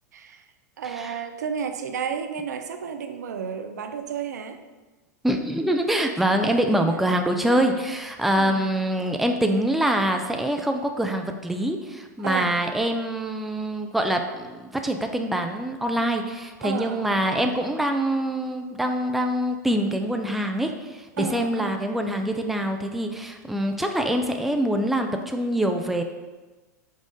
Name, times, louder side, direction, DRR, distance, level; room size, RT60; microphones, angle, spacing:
voice 1, 0.1-0.5 0.8-4.6 6.5-7.0 8.4-8.7 12.2-12.6 16.6-17.5 21.2-21.9, right 7 dB, 80° right, 7 dB, 0.4 m, -32 dB
voice 2, 5.2-26.0, right 1 dB, ahead, 4 dB, 0.4 m, -25 dB
5.3 x 2.5 x 3.6 m, 1.2 s
hypercardioid pair, 100°, 9 cm